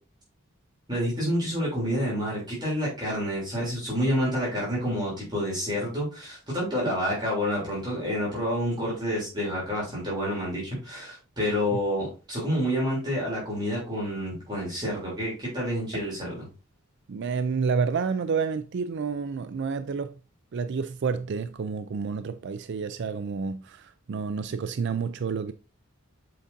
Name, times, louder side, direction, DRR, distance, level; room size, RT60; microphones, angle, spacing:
voice 1, 0.9-16.5, equal, 20° right, 3.2 m, -28 dB
voice 2, 17.1-20.2 20.5-25.5, right 5 dB, 55° right, 0.4 m, -29 dB
7.6 x 5.1 x 2.6 m
head